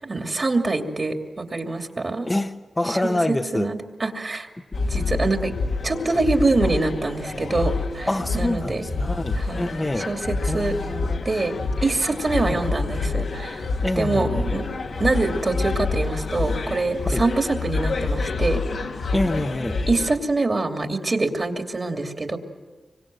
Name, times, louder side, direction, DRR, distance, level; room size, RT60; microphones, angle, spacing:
voice 1, 0.0-2.3 2.9-4.5 4.9-5.5 5.8-8.1 8.3-8.8 9.4-9.7 10.0-10.7 11.2-11.5 11.8-13.6 14.0-14.7 15.0-18.6 19.9-22.4, right 2 dB, 40° right, 4 dB, 2.7 m, -24 dB
voice 2, 2.2-3.7 8.1-10.1 10.5-11.2 12.4-12.6 13.8-14.5 17.0-17.2 19.1-19.8, left 1 dB, 20° left, 5 dB, 1.0 m, -26 dB
sound 1, 4.7-20.1, left 3 dB, 85° left, 2.3 m, -27 dB
25.5 x 24.0 x 7.8 m, 1.3 s
wide cardioid pair, 75°, 0 cm